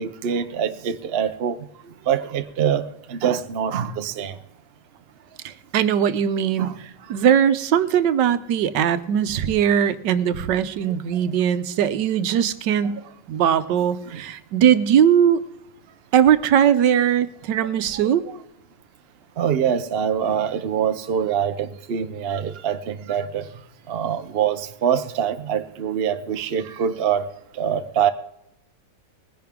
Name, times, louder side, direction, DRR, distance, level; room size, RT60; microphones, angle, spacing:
voice 1, 0.0-1.6 2.1-2.8 3.1-4.4 6.6-6.8 12.8-12.9 14.1-14.2 18.0-18.3 19.4-23.5 23.9-27.3 27.6-28.1, right 8 dB, 60° right, 9 dB, 0.6 m, -24 dB
voice 2, 5.7-6.7 7.1-13.0 13.3-15.4 16.1-18.2, right 9 dB, 80° right, 13 dB, 1.4 m, -19 dB
20.0 x 10.5 x 3.6 m, 0.79 s
omnidirectional pair, 1.9 m